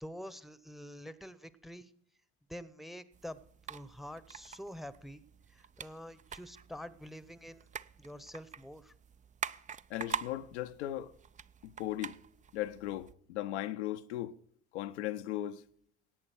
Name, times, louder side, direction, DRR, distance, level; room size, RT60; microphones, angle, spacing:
voice 1, 0.0-1.9 2.5-3.4 3.7-5.2 5.5-7.6 8.0-8.9, equal, ahead, 0.9 m, -47 dB
sound 1, 3.1-13.1, right 7 dB, 20° right, 0.5 m, -45 dB
voice 2, 9.9-11.1 11.6-12.2 12.5-14.3 14.7-15.6, left 13 dB, 75° left, 0.7 m, -37 dB
17.5 x 8.6 x 4.6 m
hypercardioid pair, 65°, 34 cm